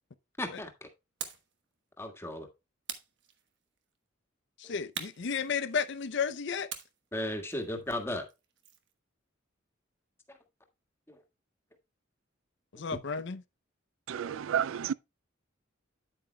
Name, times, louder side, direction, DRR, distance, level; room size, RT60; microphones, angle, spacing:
voice 1, 0.4-0.9 2.0-2.5 7.1-8.2, left 1 dB, 10° left, 1.6 m, -35 dB
sound 1, 1.2-1.5 2.9-3.8 4.9-6.1 6.7-8.9, right 8 dB, 60° right, 1.2 m, -44 dB
voice 2, 4.6-6.7 12.8-13.4, left 6 dB, 60° left, 0.6 m, -33 dB
voice 3, 14.1-14.9, right 8 dB, 75° right, 0.4 m, -31 dB
9.4 x 8.6 x 2.2 m
head